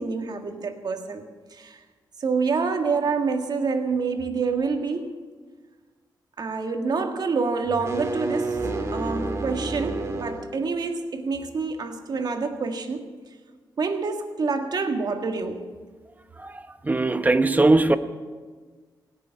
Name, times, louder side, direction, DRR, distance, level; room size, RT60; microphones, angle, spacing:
voice 1, 0.0-1.8 2.2-5.1 6.4-8.6 8.9-13.1 13.8-15.7, right 4 dB, 60° right, 6 dB, 1.6 m, -27 dB
sound 1, 7.7-10.5, right 2 dB, 40° right, 2.1 m, -29 dB
voice 2, 16.9-18.0, right 2 dB, 20° right, 11 dB, 0.9 m, -19 dB
17.0 x 7.1 x 9.9 m, 1.5 s
cardioid pair, 80°, 8 cm